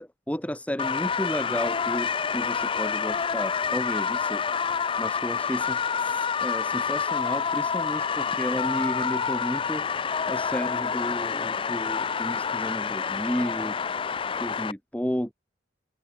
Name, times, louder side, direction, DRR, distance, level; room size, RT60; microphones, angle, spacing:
voice 1, 0.0-4.4 5.0-9.9 10.3-13.8 14.4-15.3, equal, 5° left, 1.2 m, -32 dB
sound 1, 0.8-14.7, left 6 dB, 30° left, 0.4 m, -28 dB
open air
head